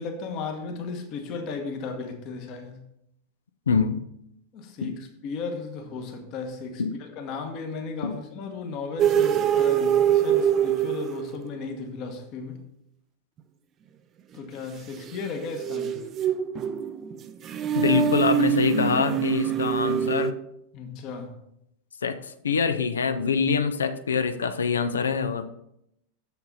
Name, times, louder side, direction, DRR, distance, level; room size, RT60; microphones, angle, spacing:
voice 1, 0.0-2.8 4.5-12.6 14.3-16.1 20.7-21.4, left 4 dB, 40° left, 5 dB, 1.2 m, -35 dB
voice 2, 3.7-4.0 4.8-4.9 6.8-6.9 8.0-8.1 17.7-20.3 22.0-25.5, left 6 dB, 70° left, 10 dB, 0.5 m, -25 dB
sound 1, 9.0-11.6 15.1-20.3, right 9 dB, 30° right, 0.4 m, -24 dB
6.8 x 6.6 x 4.0 m, 0.78 s
figure-of-eight pair, 90°, 0 cm